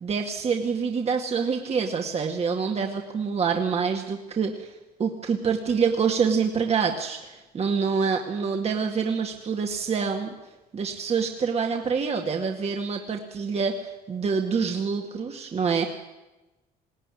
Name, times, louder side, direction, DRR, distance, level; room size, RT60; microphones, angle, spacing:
voice 1, 0.0-4.7 5.0-10.3 10.7-15.9, right 5 dB, 40° right, 3 dB, 2.1 m, -26 dB
21.0 x 17.0 x 10.0 m, 1.0 s
cardioid pair, 110°, 17 cm